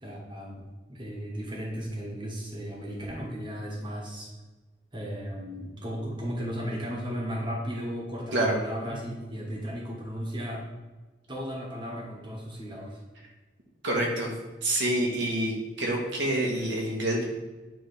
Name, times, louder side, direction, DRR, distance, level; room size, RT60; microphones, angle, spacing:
voice 1, 0.0-4.3 4.9-10.6 11.3-13.0, equal, 25° right, -3 dB, 1.4 m, -35 dB
voice 2, 13.8-14.3 14.6-17.2, right 1 dB, 75° right, -1 dB, 1.3 m, -27 dB
9.1 x 3.4 x 3.4 m, 1.2 s
head